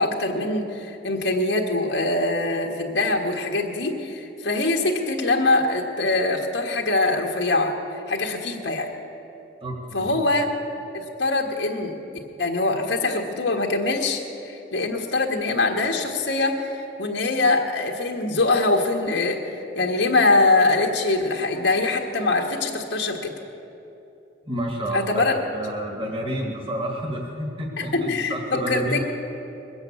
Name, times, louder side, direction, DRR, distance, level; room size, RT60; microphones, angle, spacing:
voice 1, 0.0-7.7 8.1-8.9 9.9-10.5 10.9-12.0 12.4-16.7 17.0-23.3 24.9-25.3 27.8-29.0, left 2 dB, 90° left, 1 dB, 1.6 m, -23 dB
voice 2, 9.6-10.1 24.5-29.0, right 1 dB, 30° right, 1 dB, 1.9 m, -30 dB
21.0 x 8.0 x 8.3 m, 2.8 s
head